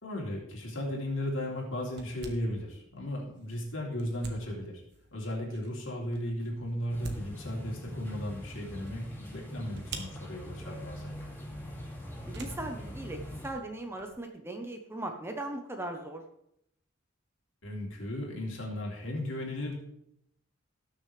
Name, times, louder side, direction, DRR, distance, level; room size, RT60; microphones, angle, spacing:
voice 1, 0.0-4.8 5.1-11.1 17.6-19.8, left 1 dB, 70° left, -2 dB, 3.3 m, -36 dB
sound 1, 0.6-14.2, right 3 dB, 55° right, 1.3 m, -50 dB
sound 2, 6.9-13.5, equal, 10° left, 2.5 m, -42 dB
voice 2, 12.3-16.2, right 1 dB, 10° right, 4 dB, 0.9 m, -38 dB
18.5 x 6.6 x 3.3 m, 0.75 s
head